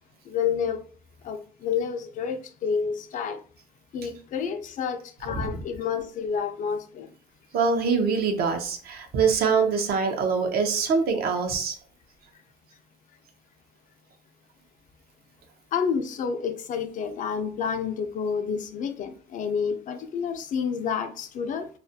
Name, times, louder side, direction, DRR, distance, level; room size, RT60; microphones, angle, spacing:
voice 1, 0.3-0.8 1.2-3.4 3.9-7.1 15.7-21.7, left 6 dB, 50° left, 0.4 m, -29 dB
voice 2, 7.5-11.7, right 5 dB, 65° right, 0.6 m, -24 dB
2.4 x 2.1 x 2.6 m
cardioid pair, 110°, 17 cm